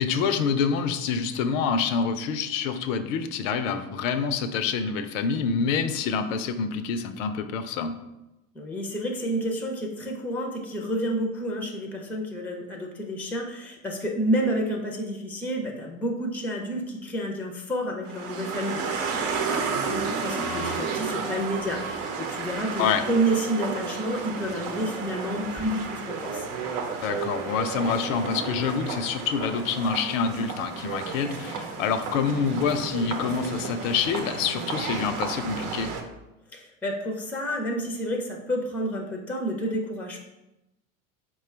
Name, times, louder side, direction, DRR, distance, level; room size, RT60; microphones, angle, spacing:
voice 1, 0.0-7.9 22.8-23.0 27.0-35.9, left 6 dB, 70° left, 10 dB, 0.6 m, -27 dB
voice 2, 8.5-26.5 36.5-40.2, right 1 dB, 5° left, 2 dB, 0.5 m, -30 dB
sound 1, 18.1-36.0, right 5 dB, 60° right, 0.8 m, -32 dB
4.5 x 2.3 x 4.4 m, 0.96 s
hypercardioid pair, 90°, 40 cm